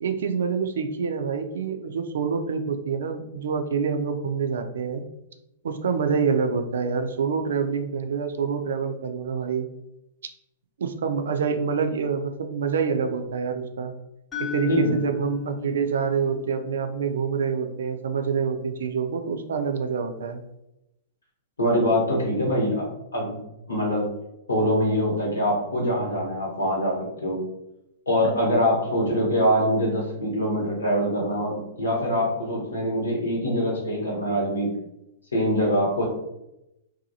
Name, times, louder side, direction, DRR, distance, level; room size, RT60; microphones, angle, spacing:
voice 1, 0.0-5.0 5.6-9.7 10.8-13.9 14.4-20.4, right 6 dB, 70° right, 7 dB, 0.3 m, -26 dB
sound 1, 14.3-18.4, left 10 dB, 20° left, 0.8 m, -37 dB
voice 2, 21.6-23.4 23.7-24.1 24.5-27.4 28.1-34.7 35.3-36.1, equal, 85° left, -3 dB, 1.1 m, -24 dB
2.7 x 2.3 x 2.6 m, 0.88 s
hypercardioid pair, 110°, 0 cm